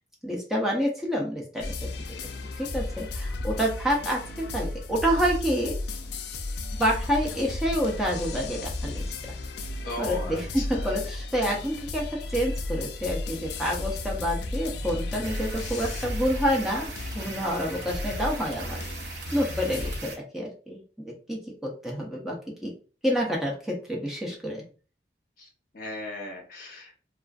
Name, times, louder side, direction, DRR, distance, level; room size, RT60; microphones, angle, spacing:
voice 1, 0.2-1.7 2.1-2.3 2.6-5.7 6.8-9.0 10.0-18.8 19.1-22.4 22.6-22.7 23.0-24.6, equal, ahead, -3 dB, 0.5 m, -28 dB
sound 1, 1.6-20.0, left 2 dB, 65° left, 0.3 m, -34 dB
voice 2, 9.8-10.9 25.4-25.5 25.7-27.1, left 2 dB, 50° left, 0 dB, 0.9 m, -38 dB
sound 2, 15.2-20.2, right 3 dB, 65° right, 0.7 m, -40 dB
2.4 x 2.3 x 2.3 m, 0.38 s
head